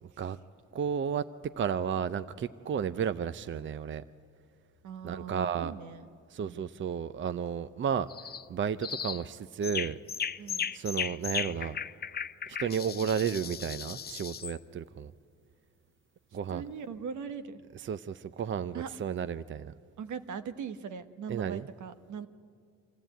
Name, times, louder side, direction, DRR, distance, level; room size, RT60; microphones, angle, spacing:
voice 1, 0.7-1.3 1.6-4.0 5.0-5.7 6.3-8.1 8.5-10.0 10.7-11.8 12.5-15.1 16.3-16.6 17.7-19.7 21.3-21.7, right 7 dB, 40° right, 14 dB, 0.6 m, -32 dB
voice 2, 4.8-6.1 6.4-6.7 10.4-10.7 16.5-17.6 18.7-18.9 20.0-22.3, right 7 dB, 75° right, 10 dB, 1.3 m, -40 dB
sound 1, 8.1-8.4 8.8-9.2 9.6-14.6, left 7 dB, 35° left, 0.6 m, -36 dB
26.0 x 14.5 x 9.1 m, 2.3 s
cardioid pair, 90°, 30 cm